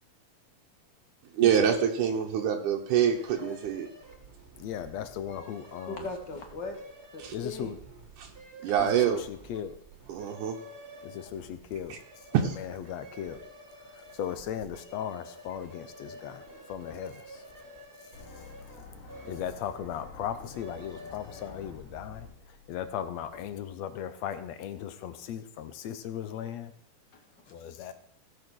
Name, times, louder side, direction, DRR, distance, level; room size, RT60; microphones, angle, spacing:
voice 1, 1.3-3.9 7.2-7.3 8.2-8.3 8.6-9.2 10.1-10.6 11.9-12.0 12.3-12.6, right 9 dB, 75° right, 1 dB, 2.5 m, -26 dB
sound 1, 3.1-22.5, right 1 dB, 20° right, 2.2 m, -50 dB
voice 2, 4.6-6.0 7.3-7.8 9.1-9.7 11.0-11.9 12.9-13.4 14.2-16.4 16.7-17.2 19.3-22.3 22.7-26.7 27.5-27.9, left 9 dB, 70° left, 11 dB, 1.9 m, -37 dB
voice 3, 5.8-6.8 7.1-7.7 8.6-8.7 16.2-16.6 27.1-27.6, left 3 dB, 40° left, 3 dB, 2.4 m, -40 dB
sound 2, 18.1-24.1, left 6 dB, 90° left, 3.7 m, -50 dB
17.0 x 6.5 x 6.3 m, 0.66 s
omnidirectional pair, 3.7 m